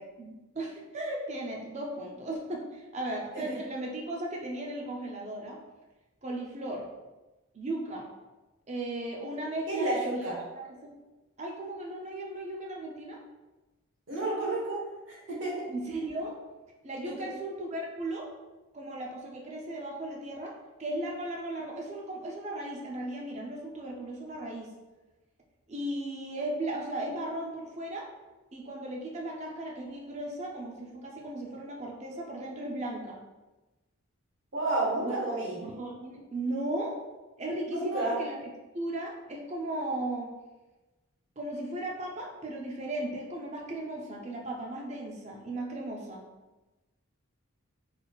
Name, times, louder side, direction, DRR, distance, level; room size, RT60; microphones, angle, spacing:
voice 1, 0.2-5.6 6.2-6.9 7.5-8.1 8.7-10.3 10.6-10.9 11.4-13.2 15.7-16.4 16.8-18.3 18.7-20.5 20.8-24.7 25.7-28.1 28.5-33.2 35.0-35.2 35.6-37.0 37.4-38.4 38.7-40.3 41.4-46.2, right 1 dB, 35° right, -1 dB, 0.5 m, -36 dB
voice 2, 9.7-10.4 14.1-14.8 15.1-15.6 17.0-17.3 34.5-35.6 37.6-38.2, right 2 dB, 70° right, -5 dB, 1.2 m, -31 dB
4.0 x 3.5 x 2.3 m, 1.1 s
head